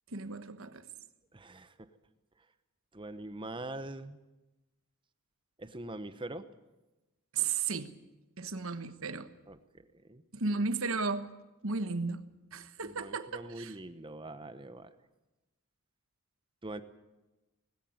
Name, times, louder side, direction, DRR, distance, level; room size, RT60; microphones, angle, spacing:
voice 1, 0.1-0.8 7.3-7.9 8.4-9.3 10.3-11.3 11.6-12.3 12.5-13.7, right 4 dB, 65° right, 11 dB, 1.3 m, -34 dB
voice 2, 1.3-1.9 2.9-4.2 5.6-6.5 9.5-9.6 9.9-10.2 12.8-14.9 16.6-16.8, right 2 dB, 20° right, 11 dB, 1.0 m, -43 dB
19.5 x 16.5 x 9.4 m, 1.1 s
head